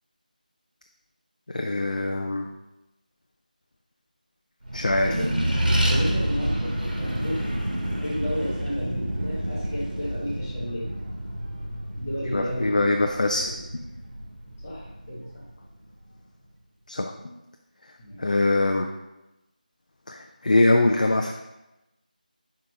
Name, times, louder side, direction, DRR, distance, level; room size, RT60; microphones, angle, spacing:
voice 1, 1.5-2.5 4.7-5.1 12.3-13.5 16.9-17.3 18.2-18.9 20.1-21.3, left 2 dB, 60° left, 3 dB, 0.5 m, -23 dB
Accelerating revving vroom, 4.6-15.6, right 1 dB, 85° right, 1.8 m, -29 dB
voice 2, 4.9-7.5 8.0-10.9 12.0-12.9 13.3-13.7 14.6-15.5 18.0-18.3, equal, 15° left, -7 dB, 1.0 m, -33 dB
5.6 x 4.7 x 3.8 m, 0.98 s
figure-of-eight pair, 175°, 5 cm